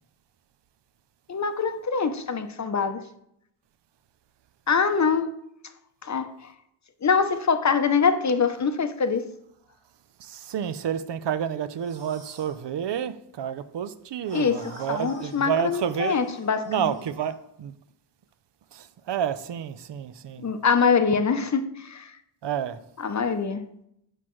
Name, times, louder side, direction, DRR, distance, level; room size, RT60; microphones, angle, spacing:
voice 1, 1.3-3.1 4.7-5.3 6.0-6.5 7.0-9.3 14.3-16.9 20.4-22.2 23.0-23.6, left 5 dB, 40° left, 0.6 m, -24 dB
voice 2, 10.2-16.2 16.7-17.7 18.7-20.5 22.4-22.8, right 8 dB, 70° right, 0.5 m, -30 dB
sound 1, 11.8-12.6 14.2-17.4, right 2 dB, 90° right, 1.7 m, -48 dB
8.1 x 6.0 x 3.1 m
wide cardioid pair, 125°, 44 cm